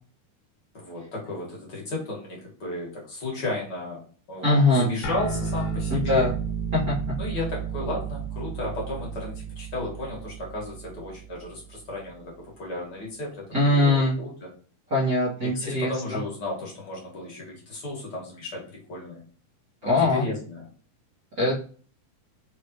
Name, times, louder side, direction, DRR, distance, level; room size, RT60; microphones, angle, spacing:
voice 1, 0.7-4.0 4.3-6.3 7.2-14.5 15.4-18.6 18.9-19.2 19.8-20.7, left 2 dB, 45° left, -3 dB, 1.6 m, -34 dB
voice 2, 4.4-4.9 5.9-6.3 6.7-6.9 13.5-14.2 14.9-16.2 19.8-20.2 21.4-21.6, left 2 dB, 50° right, -8 dB, 1.1 m, -22 dB
sound 1, 5.0-11.9, right 6 dB, 70° left, 2.1 m, -32 dB
5.0 x 3.3 x 2.9 m, 0.44 s
omnidirectional pair, 3.7 m